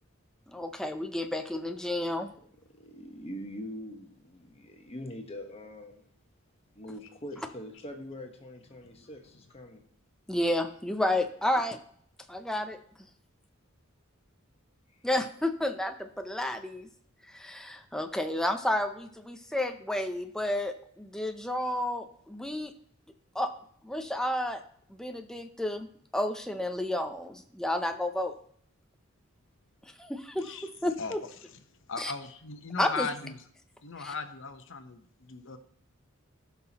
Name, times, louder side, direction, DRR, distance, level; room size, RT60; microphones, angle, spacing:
voice 1, 0.5-2.3 10.3-11.8 12.3-12.8 15.0-16.9 17.3-22.7 23.3-23.5 23.8-24.6 24.9-28.3 30.0-31.2 32.0-32.1 32.8-33.1 34.0-34.1, left 1 dB, 5° left, 0.5 m, -31 dB
voice 2, 2.7-6.1 6.7-9.8, left 1 dB, 30° left, 1.2 m, -43 dB
voice 3, 31.9-33.3 33.8-35.6, left 4 dB, 60° left, 0.9 m, -37 dB
16.5 x 5.7 x 2.9 m
head